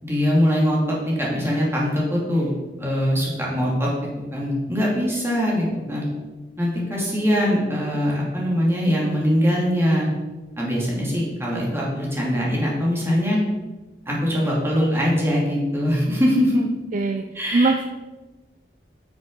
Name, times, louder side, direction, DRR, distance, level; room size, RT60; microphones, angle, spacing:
voice 1, 0.0-0.8 1.0-2.5 2.8-3.9 4.3-6.0 6.6-10.1 10.6-13.4 14.1-16.6 17.3-17.9, equal, 15° right, -4 dB, 2.3 m, -22 dB
voice 2, 16.9-17.2 17.5-17.9, right 3 dB, 45° right, 5 dB, 0.4 m, -20 dB
9.1 x 6.1 x 3.8 m, 1.2 s
head